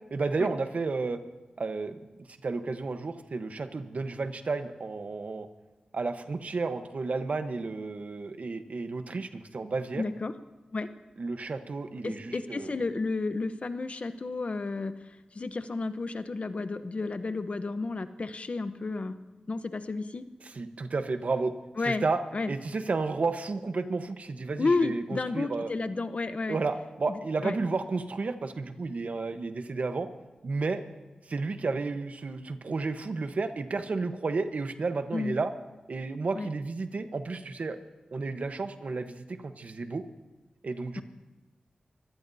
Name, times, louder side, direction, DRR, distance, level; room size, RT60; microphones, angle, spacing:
voice 1, 0.1-1.2 1.6-2.0 2.4-5.5 5.9-10.0 11.2-12.7 20.4-21.5 21.8-22.2 22.5-25.7 26.5-30.1 30.4-30.8 31.3-35.5 35.9-37.8 38.1-40.0 40.6-41.0, right 3 dB, 65° right, 8 dB, 1.1 m, -32 dB
voice 2, 10.0-10.3 10.7-10.9 12.0-14.9 15.3-19.2 19.5-20.2 21.8-22.0 22.3-22.5 24.6-26.6 27.1-27.6 35.1-35.4 36.4-36.5 41.0-41.1, left 3 dB, 55° left, 11 dB, 0.9 m, -31 dB
24.0 x 17.0 x 2.8 m, 1.1 s
cardioid pair, 45°, 3 cm